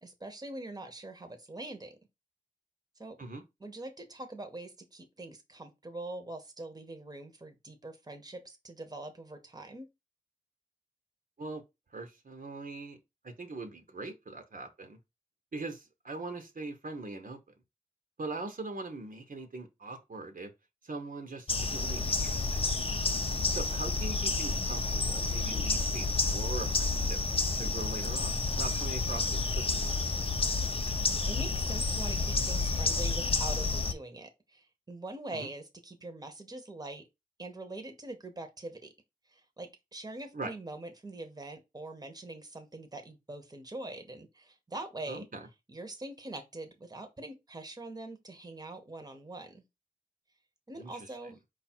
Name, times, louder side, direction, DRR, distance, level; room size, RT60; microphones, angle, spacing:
voice 1, 0.0-2.0 3.0-3.2 3.6-9.9 31.3-37.0 37.4-38.9 39.3-45.3 45.7-49.6 50.7-51.4, right 2 dB, 25° right, 0.9 m, -43 dB
voice 2, 11.9-13.0 13.2-15.0 15.5-17.4 18.2-20.5 20.8-22.6 23.5-27.2 27.6-29.7 35.3-35.5 40.3-40.5 45.1-45.5 50.8-50.9, right 3 dB, 65° right, 0.9 m, -41 dB
sound 1, 21.5-33.9, left 3 dB, 40° left, 0.5 m, -30 dB
4.8 x 2.4 x 4.3 m
wide cardioid pair, 75°, 15 cm